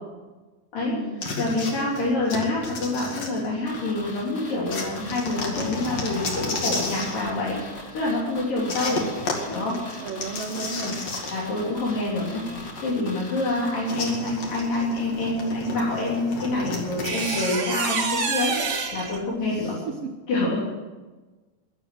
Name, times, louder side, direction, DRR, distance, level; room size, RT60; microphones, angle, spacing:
voice 1, 0.9-1.4 8.7-8.8 10.0-11.1 19.4-20.2, right 4 dB, 75° right, 3 dB, 1.3 m, -35 dB
sound 1, 1.2-3.9 4.7-7.2 8.7-11.6 11.9-12.0 13.9-17.6, left 3 dB, 50° left, 3.1 m, -32 dB
voice 2, 1.4-9.0 9.5-9.8 10.5-10.9 11.3-12.4 12.8-19.7 20.3-20.6, left 2 dB, 75° left, -5 dB, 5.2 m, -27 dB
sound 2, 3.7-14.6 14.9-15.0, left 2 dB, 35° left, 2.1 m, -41 dB
sound 3, 15.8-15.9 17.0-19.2, right 4 dB, 40° right, 1.6 m, -27 dB
21.5 x 8.2 x 7.8 m, 1.2 s
omnidirectional pair, 4.0 m